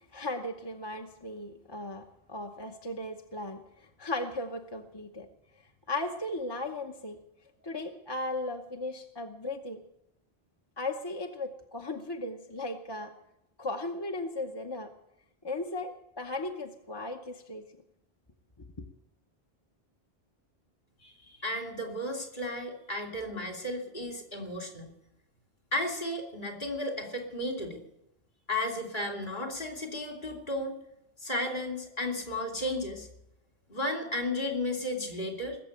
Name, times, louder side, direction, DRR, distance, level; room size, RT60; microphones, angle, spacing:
voice 1, 0.0-5.3 5.9-7.2 7.6-9.8 10.8-13.1 13.6-14.9 15.4-17.7, left 2 dB, 25° left, 3 dB, 0.9 m, -36 dB
voice 2, 21.0-24.9 25.7-27.8 28.5-30.7 31.2-33.1 33.7-35.6, left 1 dB, 50° left, 1 dB, 3.1 m, -34 dB
19.5 x 7.5 x 8.8 m, 0.84 s
omnidirectional pair, 1.1 m